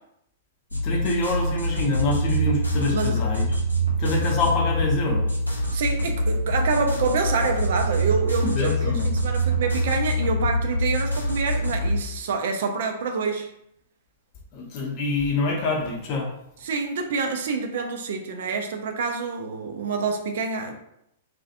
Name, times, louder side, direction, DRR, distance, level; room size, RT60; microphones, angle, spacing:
sound 1, 0.7-12.0, equal, 90° left, 0.5 m, -25 dB
voice 1, 0.8-3.6 4.0-5.3 8.4-9.2 14.5-16.3, left 2 dB, 40° left, 0 dB, 0.6 m, -26 dB
voice 2, 5.7-13.5 16.6-20.7, right 4 dB, 55° right, 4 dB, 0.3 m, -27 dB
2.3 x 2.1 x 2.7 m, 0.77 s
figure-of-eight pair, 105°, 0 cm